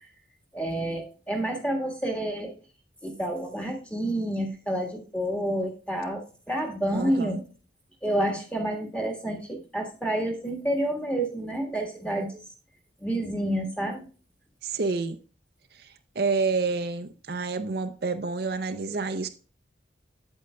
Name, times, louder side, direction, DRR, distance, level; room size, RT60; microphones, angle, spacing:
voice 1, 0.5-2.6 3.0-7.4 8.0-12.4 13.0-14.0, right 1 dB, 5° left, 1.6 m, -29 dB
voice 2, 6.9-7.4 14.6-15.2 15.7-19.3, right 4 dB, 55° right, 0.5 m, -29 dB
9.0 x 8.2 x 2.3 m
head